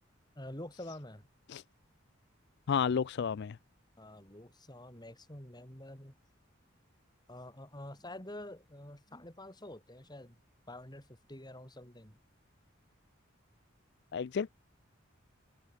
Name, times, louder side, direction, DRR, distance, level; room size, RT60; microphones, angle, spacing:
voice 1, 0.4-1.3 4.0-6.2 7.3-10.4 10.7-12.2, left 1 dB, 20° left, 7.4 m, -47 dB
voice 2, 2.7-3.6 14.1-14.5, left 6 dB, 55° left, 0.4 m, -31 dB
open air
head